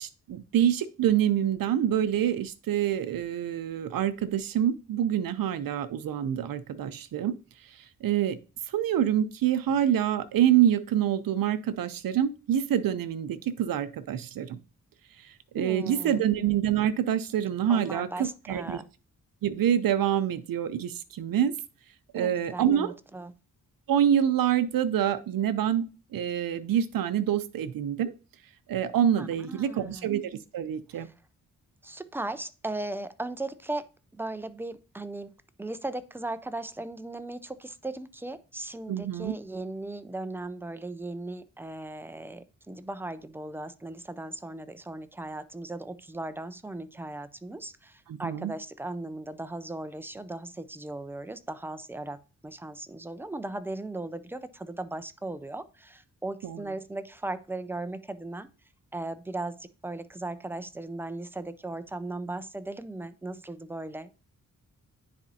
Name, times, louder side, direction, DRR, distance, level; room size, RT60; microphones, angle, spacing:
voice 1, 0.0-7.3 8.0-8.4 8.7-14.6 15.2-18.8 19.4-21.5 22.1-22.9 23.9-25.9 26.1-28.1 28.7-31.1 38.9-39.3 48.1-48.5 56.4-56.6, right 10 dB, 85° right, 11 dB, 0.5 m, -26 dB
voice 2, 15.6-16.2 17.7-18.9 22.2-23.3 29.2-30.1 30.9-31.1 31.8-33.9 34.1-35.3 35.6-52.2 52.4-58.5 58.9-64.1, right 2 dB, 5° right, 12 dB, 0.3 m, -37 dB
9.8 x 4.2 x 2.7 m, 0.33 s
wide cardioid pair, 140°, 33 cm